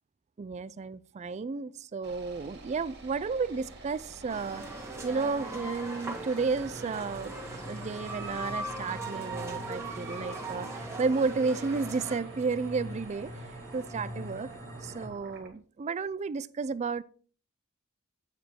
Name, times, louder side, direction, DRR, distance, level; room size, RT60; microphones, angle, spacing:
voice 1, 0.4-4.6 5.0-7.3 7.7-13.3 13.7-14.5 14.8-17.0, right 4 dB, 30° right, 0.3 m, -32 dB
sound 1, 2.0-15.5, right 3 dB, 50° right, 1.9 m, -49 dB
sound 2, 4.3-12.2, right 2 dB, 10° right, 1.7 m, -40 dB
sound 3, 4.8-15.1, equal, 15° left, 1.9 m, -45 dB
8.2 x 5.0 x 4.4 m
head